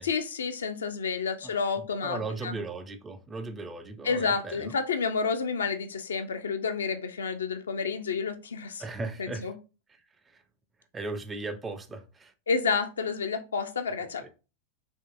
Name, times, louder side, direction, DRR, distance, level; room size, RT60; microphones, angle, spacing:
voice 1, 0.0-2.6 4.0-8.8 9.2-9.5 12.5-14.3, left 5 dB, 70° left, 0.4 m, -30 dB
voice 2, 1.4-4.7 8.8-9.5 10.3-10.4 10.9-12.3 14.2-14.3, right 3 dB, 15° right, 0.4 m, -37 dB
3.6 x 2.5 x 2.4 m
figure-of-eight pair, 90°, 0 cm